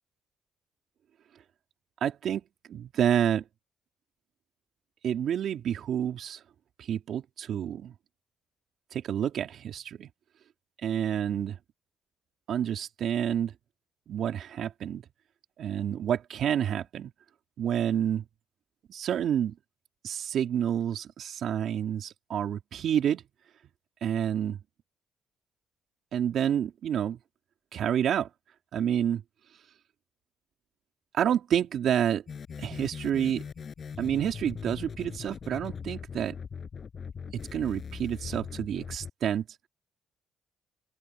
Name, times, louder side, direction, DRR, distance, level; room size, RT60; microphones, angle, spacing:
voice 1, 2.0-2.4 2.7-3.4 5.0-6.4 6.9-7.9 8.9-10.1 10.8-11.6 12.5-13.5 14.1-15.0 15.6-17.1 17.6-18.2 18.9-19.5 20.0-23.2 24.0-24.6 26.1-27.2 27.7-28.3 28.7-29.2 31.1-32.2 32.6-33.4 34.0-36.4 37.5-39.4, right 9 dB, 70° right, 3.7 m, -28 dB
sound 1, 32.3-39.1, left 6 dB, 45° left, 7.5 m, -40 dB
open air
cardioid pair, 90°, 0 cm